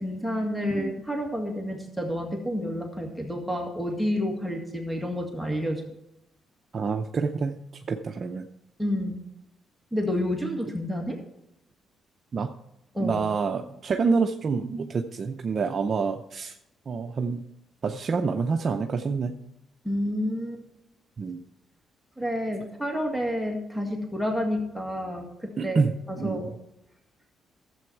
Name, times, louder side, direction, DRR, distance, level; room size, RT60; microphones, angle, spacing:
voice 1, 0.0-5.8 8.8-9.2 9.9-11.2 12.9-13.2 19.8-20.6 22.2-26.5, equal, 5° left, 2 dB, 1.9 m, -29 dB
voice 2, 6.7-8.5 12.3-12.5 13.0-16.6 16.9-17.4 17.8-19.4 21.2-21.4 25.6-26.4, right 5 dB, 45° right, 5 dB, 0.6 m, -27 dB
12.0 x 7.8 x 4.5 m, 0.84 s
cardioid pair, 90°, 0 cm